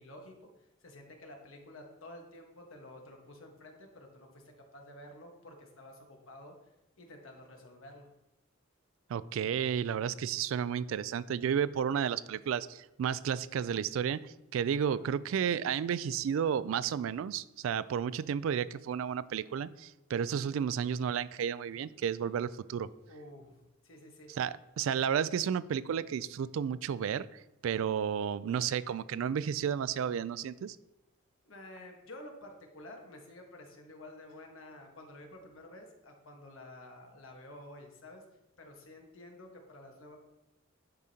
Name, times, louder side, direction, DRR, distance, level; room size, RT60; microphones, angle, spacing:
voice 1, 0.0-6.7 7.0-8.1 14.8-14.9 23.1-24.3 31.4-38.2 38.6-40.2, left 1 dB, 80° left, 2 dB, 1.4 m, -51 dB
voice 2, 9.1-22.9 24.3-30.8, right 8 dB, 75° right, 18 dB, 0.3 m, -32 dB
10.5 x 4.9 x 2.8 m, 0.94 s
head